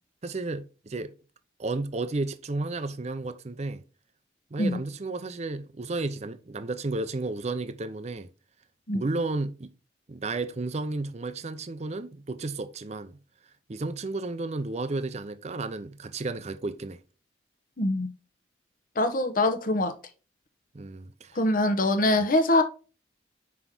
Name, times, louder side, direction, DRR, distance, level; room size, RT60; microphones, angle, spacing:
voice 1, 0.2-1.1 1.6-3.8 4.5-8.3 8.9-9.7 10.1-13.1 13.7-17.0 20.7-21.4, right 3 dB, 40° right, 0.6 m, -32 dB
voice 2, 17.8-18.1 18.9-19.9 21.3-22.6, left 2 dB, 50° left, 0.9 m, -23 dB
6.1 x 4.7 x 3.8 m
head